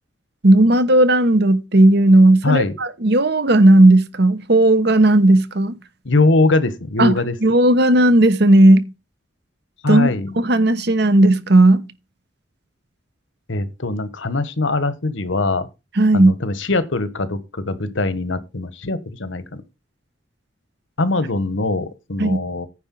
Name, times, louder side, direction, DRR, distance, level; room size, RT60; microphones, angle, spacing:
voice 1, 0.4-5.7 7.0-7.1 7.4-8.9 9.9-11.8 16.0-16.3 22.2-22.4, right 1 dB, 60° right, 1.0 m, -14 dB
voice 2, 2.4-2.8 6.0-7.3 9.8-10.4 13.5-15.7 16.1-19.6 21.0-22.7, left 2 dB, 85° left, 1.3 m, -21 dB
9.9 x 4.5 x 7.5 m
head